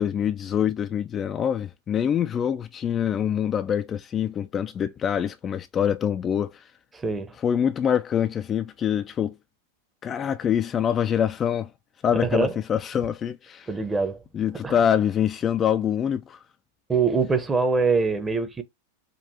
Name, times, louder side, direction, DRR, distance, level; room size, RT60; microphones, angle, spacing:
voice 1, 0.0-6.6 7.4-9.3 10.0-11.7 12.0-13.7 14.3-16.4, left 9 dB, 25° left, 0.3 m, -25 dB
voice 2, 6.9-7.3 12.1-12.5 13.7-14.2 14.5-14.7 16.9-18.6, right 4 dB, 15° right, 0.8 m, -24 dB
5.2 x 2.3 x 2.7 m
figure-of-eight pair, 90°, 0 cm